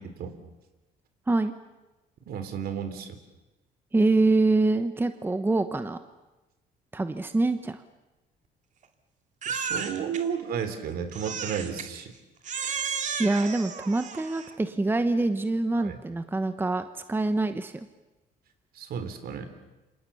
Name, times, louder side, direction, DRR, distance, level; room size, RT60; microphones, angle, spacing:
voice 1, 2.3-3.2 9.5-12.1 15.8-16.0 18.7-19.5, right 7 dB, 65° right, 9 dB, 3.6 m, -33 dB
voice 2, 3.9-6.0 6.9-7.8 13.2-17.9, right 2 dB, 10° right, 9 dB, 1.1 m, -25 dB
Crying sobbing, 9.4-10.2 11.1-11.9 12.4-14.6, right 6 dB, 45° right, 2.5 m, -33 dB
28.5 x 26.0 x 7.1 m, 1.1 s
cardioid pair, 110°, 17 cm